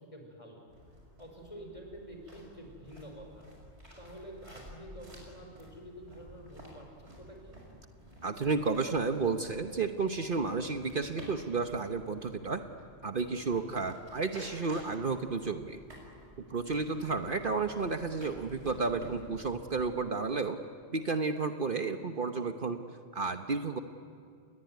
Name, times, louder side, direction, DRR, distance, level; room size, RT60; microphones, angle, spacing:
voice 1, 0.1-0.6 1.2-3.5 4.0-7.6 13.5-13.9, equal, 30° left, 2 dB, 5.8 m, -48 dB
sound 1, 0.7-19.9, equal, 80° right, 6.5 m, -52 dB
voice 2, 8.2-12.6 13.0-15.8 16.5-20.6 20.9-22.8 23.1-23.8, right 4 dB, 50° right, 7 dB, 1.2 m, -32 dB
29.5 x 20.5 x 9.4 m, 2.3 s
omnidirectional pair, 1.1 m